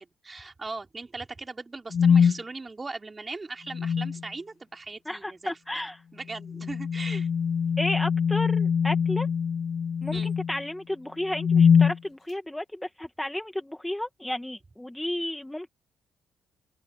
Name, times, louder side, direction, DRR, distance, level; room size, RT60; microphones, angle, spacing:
voice 1, 0.2-5.6 6.1-7.3 10.1-10.3, right 3 dB, 25° right, 4.1 m, -39 dB
mic tap+mid larsen, 1.9-2.4 3.7-4.2 6.4-10.6 11.3-12.0, left 6 dB, 50° left, 1.1 m, -23 dB
voice 2, 5.0-6.0 7.8-9.3 10.0-15.7, left 1 dB, 5° left, 1.7 m, -33 dB
open air
cardioid pair, 105°, 0 cm